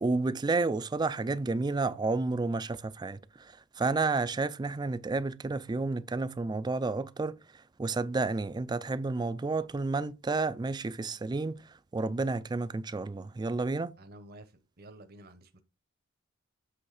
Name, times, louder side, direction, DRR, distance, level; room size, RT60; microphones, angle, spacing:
voice 1, 0.0-7.4 7.8-11.6 11.9-13.9, right 3 dB, 20° right, 0.3 m, -31 dB
voice 2, 14.0-15.6, right 1 dB, 50° right, 0.8 m, -51 dB
7.7 x 3.4 x 4.8 m
head